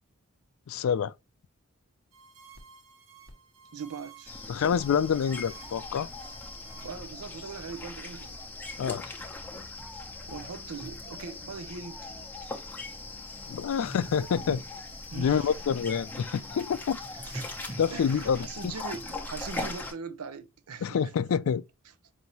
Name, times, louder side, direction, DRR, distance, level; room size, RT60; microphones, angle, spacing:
voice 1, 0.7-1.1 4.5-6.1 8.8-9.0 13.5-14.6 15.2-17.0 17.8-18.7 20.8-21.6, left 7 dB, 70° left, 0.3 m, -27 dB
sound 1, 2.1-8.1, right 5 dB, 65° right, 1.2 m, -54 dB
voice 2, 3.7-4.3 6.8-8.4 10.3-12.0 15.1-15.5 17.2-21.0, right 5 dB, 90° right, 0.6 m, -41 dB
sound 2, 4.3-19.9, left 2 dB, 10° left, 0.7 m, -40 dB
5.4 x 2.7 x 2.9 m
head